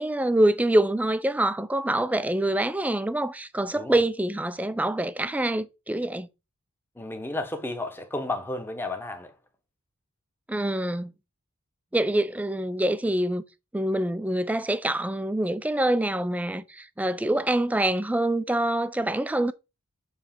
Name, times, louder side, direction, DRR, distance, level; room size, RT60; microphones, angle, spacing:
voice 1, 0.0-6.3 10.5-11.1 11.9-13.4 13.7-19.5, right 1 dB, 5° right, 0.3 m, -25 dB
voice 2, 7.0-9.3, left 2 dB, 10° left, 0.9 m, -32 dB
7.1 x 3.2 x 5.7 m
head